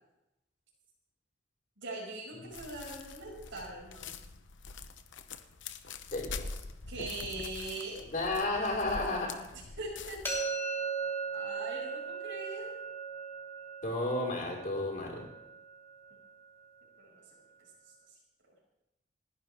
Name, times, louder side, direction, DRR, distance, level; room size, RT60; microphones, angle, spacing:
voice 1, 1.8-4.2 6.9-8.0 9.8-10.2 11.3-12.7 17.0-17.2, right 2 dB, 85° right, -4 dB, 5.9 m, -41 dB
sound 1, 2.5-10.4, left 4 dB, 75° left, 0.9 m, -45 dB
voice 2, 6.1-6.6 8.1-9.3 13.8-15.2, left 2 dB, 45° left, -2 dB, 5.0 m, -32 dB
sound 2, 10.2-16.1, right 5 dB, 10° left, 3.1 m, -38 dB
30.0 x 11.0 x 3.5 m, 0.91 s
head